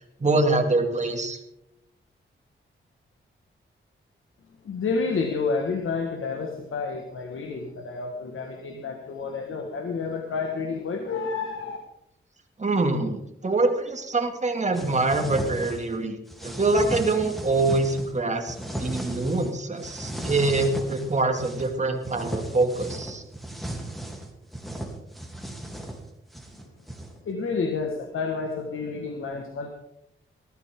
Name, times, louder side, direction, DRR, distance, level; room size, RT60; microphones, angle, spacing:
voice 1, 0.2-1.4 12.6-16.2 16.4-23.2, right 2 dB, 35° right, 3 dB, 2.6 m, -25 dB
voice 2, 4.6-11.8 27.3-29.7, left 4 dB, 80° left, 3 dB, 1.8 m, -30 dB
sound 1, 14.7-16.0 16.3-18.1 18.5-19.5 19.8-21.7 22.0-27.2, right 1 dB, ahead, 3.2 m, -35 dB
19.5 x 13.5 x 3.8 m, 0.81 s
cardioid pair, 75°, 21 cm